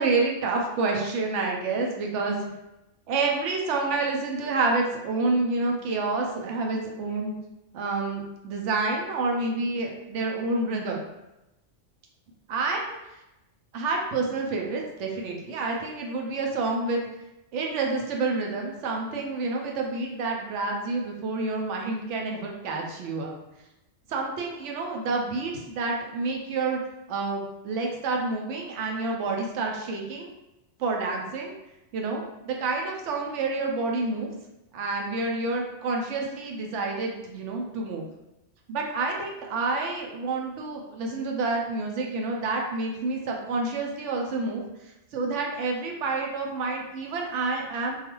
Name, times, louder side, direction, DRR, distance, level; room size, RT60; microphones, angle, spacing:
voice 1, 0.0-2.6 3.1-7.3 7.7-11.0 12.5-13.0 13.7-17.0 17.5-23.3 24.1-26.8 27.1-30.3 30.8-31.5 31.9-34.3 34.7-38.0 38.7-44.6 45.1-48.0, right 3 dB, 80° right, 0 dB, 0.9 m, -28 dB
2.3 x 2.3 x 3.0 m, 0.94 s
omnidirectional pair, 1.2 m